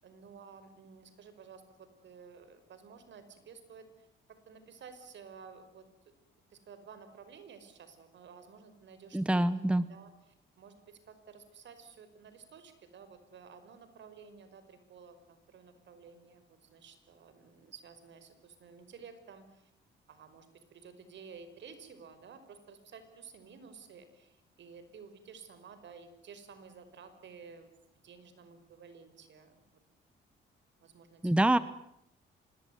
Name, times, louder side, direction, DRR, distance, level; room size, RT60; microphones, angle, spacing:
voice 1, 0.0-4.1 4.5-5.9 6.5-9.5 9.9-19.7 20.1-27.7 28.0-29.5 30.8-31.5, right 6 dB, 65° right, 11 dB, 5.4 m, -53 dB
voice 2, 9.1-9.8 31.2-31.6, right 1 dB, 5° right, 15 dB, 1.1 m, -25 dB
26.0 x 21.0 x 9.6 m, 0.78 s
cardioid pair, 90°, 20 cm